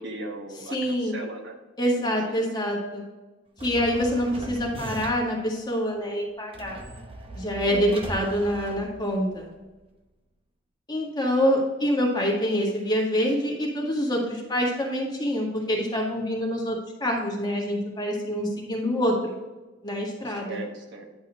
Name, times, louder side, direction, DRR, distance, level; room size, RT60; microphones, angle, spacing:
voice 1, 0.0-1.6 2.0-2.4 7.7-8.0 20.2-21.1, right 2 dB, 60° right, 2 dB, 1.2 m, -38 dB
voice 2, 0.7-1.2 1.8-3.1 3.6-6.8 7.4-9.5 10.9-19.4 19.8-20.6, equal, 20° left, -2 dB, 1.8 m, -26 dB
sound 1, 3.6-5.4 6.5-9.4, right 1 dB, 30° right, 0.8 m, -39 dB
10.5 x 4.2 x 5.0 m, 1.1 s
head